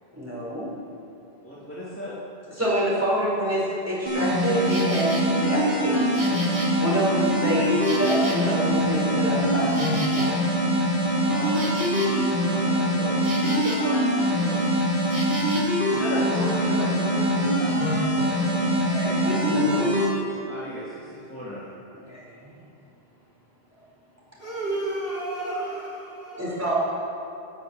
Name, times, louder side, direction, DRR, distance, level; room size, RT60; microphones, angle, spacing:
voice 1, 0.1-0.7 2.6-3.6 3.9-6.2 6.8-10.3 10.8-10.9 11.3-11.5 16.3-16.9 18.7-20.2 22.1-22.6 26.4-26.7, equal, 15° right, -6 dB, 4.3 m, -27 dB
voice 2, 1.4-2.2 11.2-11.8 12.5-14.6 15.8-18.8 20.5-21.6, equal, 10° left, -9 dB, 2.5 m, -36 dB
sound 1, 4.1-20.1, equal, 55° right, 4.0 m, -23 dB
Insect, 4.4-5.2 5.7-8.8 9.1-14.0 14.2-15.8, right 1 dB, 35° right, 1.9 m, -38 dB
voice 3, 24.4-26.6, right 2 dB, 65° left, -7 dB, 3.9 m, -31 dB
14.0 x 8.1 x 8.9 m, 2.7 s
omnidirectional pair, 1.1 m